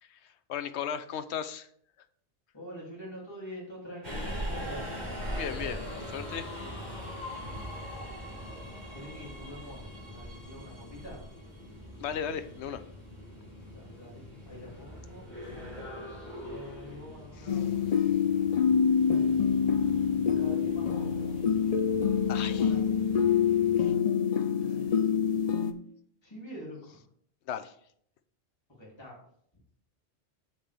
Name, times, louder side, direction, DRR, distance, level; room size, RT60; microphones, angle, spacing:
voice 1, 0.5-1.7 5.3-6.6 12.0-12.8 17.4-17.6 22.3-22.7 23.8-23.9 27.5-27.7, left 8 dB, 75° left, 12 dB, 1.0 m, -36 dB
voice 2, 2.5-4.9 7.8-8.6 8.9-11.2 13.7-15.3 16.4-17.9 20.4-21.4 21.7-21.8 22.3-22.9 24.6-25.0 25.4-25.6 26.2-27.0 28.8-29.2, equal, 25° left, -5 dB, 2.9 m, -46 dB
Subway metro underground, 4.0-23.9, equal, 40° right, 4.5 m, -42 dB
sound 1, 17.5-25.7, left 7 dB, 45° left, 0.5 m, -26 dB
9.1 x 7.5 x 3.5 m, 0.64 s
omnidirectional pair, 1.1 m